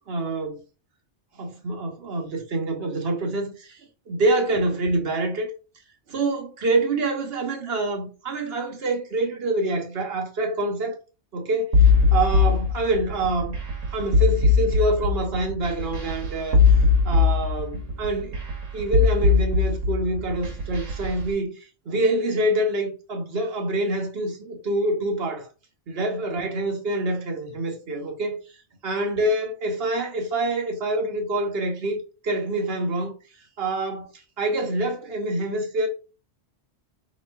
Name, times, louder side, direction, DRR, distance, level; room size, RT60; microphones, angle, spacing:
voice 1, 0.1-0.6 1.4-5.5 6.1-11.0 11.3-11.8 12.1-13.6 13.9-16.6 17.0-18.4 18.7-21.5 21.9-25.5 25.9-28.4 28.8-32.0 32.2-33.1 33.6-34.1 34.4-35.9, right 2 dB, 55° right, 1.3 m, -26 dB
sound 1, 11.7-21.3, left 4 dB, 80° right, 1.5 m, -20 dB
3.6 x 3.1 x 4.6 m
omnidirectional pair, 1.3 m